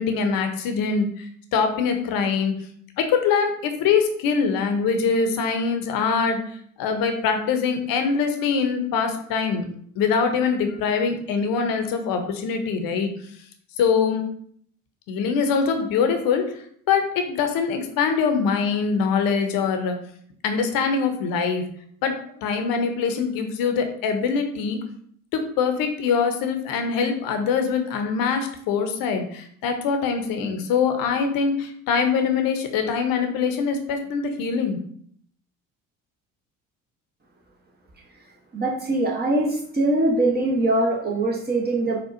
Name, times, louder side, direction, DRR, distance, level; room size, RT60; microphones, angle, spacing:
voice 1, 0.0-2.5 3.0-6.4 6.8-9.6 10.0-13.1 13.8-14.2 15.1-16.4 16.9-20.0 20.4-21.6 22.0-24.8 25.3-34.8, left 5 dB, 55° left, 6 dB, 0.7 m, -23 dB
voice 2, 38.5-42.0, right 2 dB, 25° right, -3 dB, 0.8 m, -22 dB
4.2 x 2.2 x 2.5 m, 0.63 s
hypercardioid pair, 60°, 41 cm